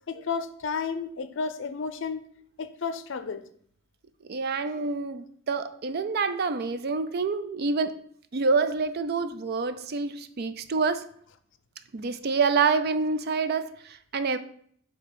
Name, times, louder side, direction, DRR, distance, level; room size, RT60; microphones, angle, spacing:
voice 1, 0.1-2.2 2.6-3.4, left 5 dB, 65° left, 0.5 m, -32 dB
voice 2, 4.3-8.0 8.3-11.1 11.9-14.4, right 4 dB, 50° right, 0.4 m, -27 dB
7.4 x 2.9 x 5.2 m
head